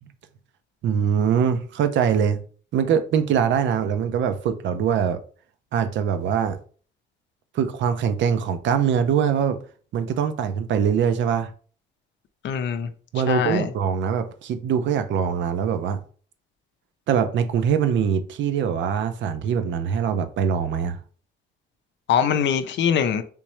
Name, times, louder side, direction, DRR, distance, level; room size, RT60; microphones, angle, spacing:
voice 1, 0.8-2.4 2.7-5.2 5.7-6.6 7.5-9.6 9.9-11.5 13.1-16.0 17.1-21.0, right 7 dB, 70° right, 0.5 m, -23 dB
voice 2, 12.4-12.9 13.3-13.7 22.1-23.2, left 8 dB, 65° left, 0.5 m, -22 dB
3.5 x 3.1 x 3.0 m
cardioid pair, 90°, 20 cm